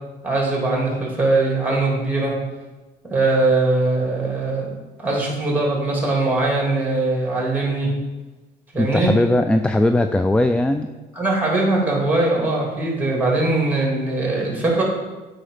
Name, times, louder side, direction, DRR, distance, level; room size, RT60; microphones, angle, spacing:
voice 1, 0.2-2.4 3.1-4.7 5.0-7.9 8.7-9.1 11.1-14.8, right 2 dB, 10° right, -2 dB, 2.9 m, -21 dB
voice 2, 8.8-10.9, left 1 dB, 5° left, 9 dB, 0.3 m, -19 dB
8.8 x 5.2 x 5.0 m, 1.2 s
cardioid pair, 110°, 17 cm